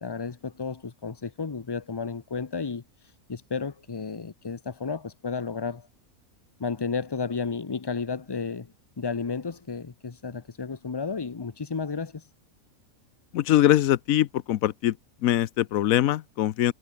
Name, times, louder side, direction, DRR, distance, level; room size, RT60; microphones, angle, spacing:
voice 1, 0.0-2.8 3.3-5.9 6.6-12.2, left 5 dB, 30° left, 0.4 m, -32 dB
voice 2, 13.3-15.0 15.2-16.7, left 13 dB, 75° left, 1.0 m, -22 dB
omnidirectional pair, 1.5 m